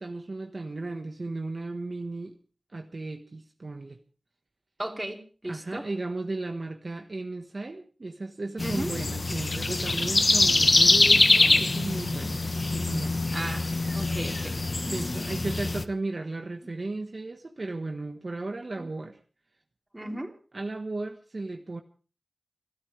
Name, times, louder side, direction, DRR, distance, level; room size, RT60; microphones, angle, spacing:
voice 1, 0.0-2.4 2.7-4.0 5.4-12.4 12.7-13.2 14.8-19.2 20.5-21.8, right 2 dB, 50° right, 4 dB, 1.5 m, -35 dB
voice 2, 4.8-5.9 8.6-8.9 13.3-15.1 18.8-18.9 19.9-20.3, right 1 dB, 20° right, 3 dB, 3.2 m, -36 dB
sound 1, 8.6-15.8, left 2 dB, 50° left, 1.3 m, -24 dB
29.0 x 13.0 x 3.4 m, 0.38 s
wide cardioid pair, 60°, 0 cm